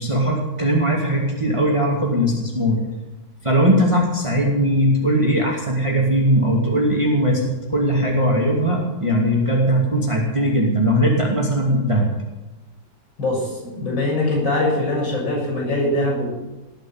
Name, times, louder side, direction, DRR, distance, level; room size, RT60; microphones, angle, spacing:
voice 1, 0.0-2.8 3.4-12.1, equal, 15° right, -2 dB, 2.6 m, -19 dB
voice 2, 13.2-16.3, left 1 dB, 65° left, 0 dB, 7.2 m, -22 dB
19.5 x 6.6 x 9.0 m, 1.1 s
omnidirectional pair, 2.2 m